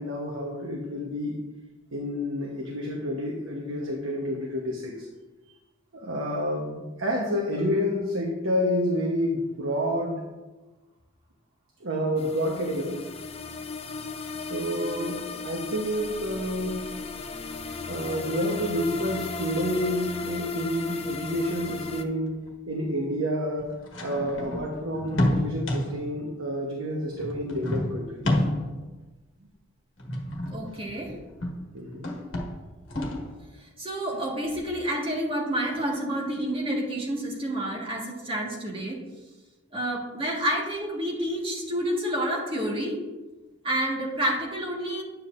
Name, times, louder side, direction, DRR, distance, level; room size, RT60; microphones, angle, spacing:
voice 1, 0.0-1.3 1.9-4.9 5.9-10.2 11.8-13.0 14.5-16.9 17.9-22.3 22.7-23.7 24.0-28.2 31.7-32.1, equal, 70° right, -1 dB, 1.1 m, -29 dB
sound 1, 12.2-22.0, left 4 dB, 30° left, 0.5 m, -36 dB
sound 2, 21.9-22.0 22.5-22.6 23.6-26.1 27.1-28.9 30.0-31.7 31.9-33.4, left 1 dB, 65° left, 1.4 m, -29 dB
voice 2, 30.5-31.1 33.8-39.0 39.7-43.0 43.6-45.0, right 1 dB, 25° right, -3 dB, 1.7 m, -29 dB
10.0 x 7.5 x 2.6 m, 1.2 s
head